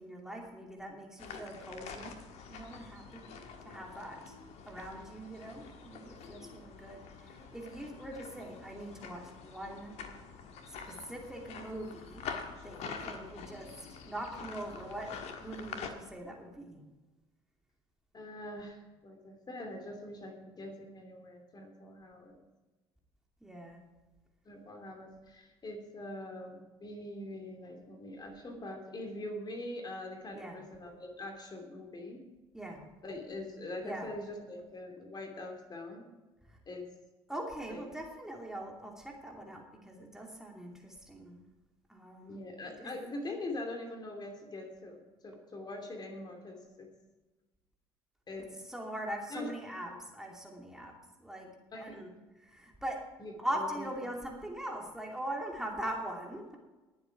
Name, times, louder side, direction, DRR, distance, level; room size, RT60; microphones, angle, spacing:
voice 1, 0.0-2.1 2.5-3.3 3.6-4.3 4.7-9.9 10.7-12.2 12.6-15.1 15.4-16.8 23.4-23.8 30.3-30.6 32.5-32.8 33.8-34.1 36.5-36.6 37.3-41.4 41.9-42.4 42.8-42.9 48.6-50.9 51.2-51.5 51.7-52.1 52.4-53.0 53.4-56.6, right 1 dB, 5° right, 0 dB, 2.7 m, -42 dB
sound 1, 1.2-15.9, left 6 dB, 50° left, 1.6 m, -46 dB
voice 2, 18.1-22.4 24.4-32.2 33.0-36.1 36.7-36.9 37.7-37.8 42.3-46.9 48.3-48.5 49.3-49.5 49.9-50.0 51.7-52.0 53.2-53.9, left 1 dB, 30° left, 3 dB, 2.8 m, -43 dB
20.0 x 7.9 x 4.8 m, 1.2 s
figure-of-eight pair, 55°, 14 cm